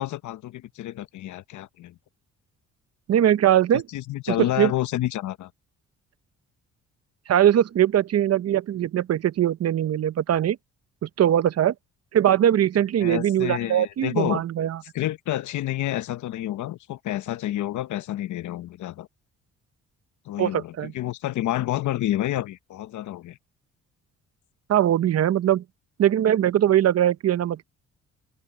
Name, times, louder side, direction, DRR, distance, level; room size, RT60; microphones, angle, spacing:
voice 1, 0.0-1.9 3.9-5.5 13.0-14.4 14.9-19.1 20.3-23.4, left 14 dB, 75° left, 0.9 m, -29 dB
voice 2, 3.1-3.9 4.3-4.7 7.3-10.6 11.0-11.7 12.1-14.8 20.4-20.9 24.7-25.6 26.0-27.6, right 11 dB, 55° right, 0.8 m, -21 dB
open air
cardioid pair, 90°, 30 cm